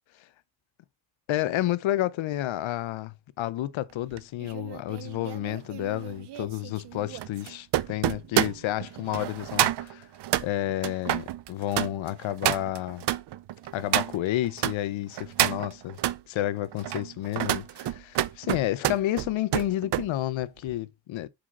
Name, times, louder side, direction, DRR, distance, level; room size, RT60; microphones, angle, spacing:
voice 1, 1.3-10.1 10.4-13.0 13.7-16.0 16.3-21.3, left 14 dB, 90° left, 0.7 m, -30 dB
sound 1, 4.1-14.8 15.1-16.2 16.7-20.1 20.4-20.7, right 13 dB, 65° right, 0.6 m, -29 dB
5.8 x 5.0 x 4.2 m
wide cardioid pair, 140°, 45 cm